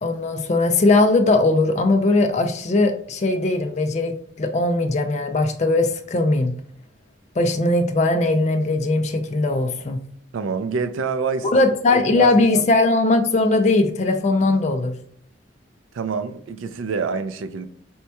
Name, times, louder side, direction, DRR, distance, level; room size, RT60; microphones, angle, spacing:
voice 1, 0.0-6.5 7.4-10.0 11.5-15.0, left 2 dB, 35° left, 0.4 m, -19 dB
voice 2, 10.3-11.5 11.9-12.6 15.9-17.7, right 5 dB, 85° right, 0.4 m, -27 dB
4.3 x 2.7 x 2.2 m
head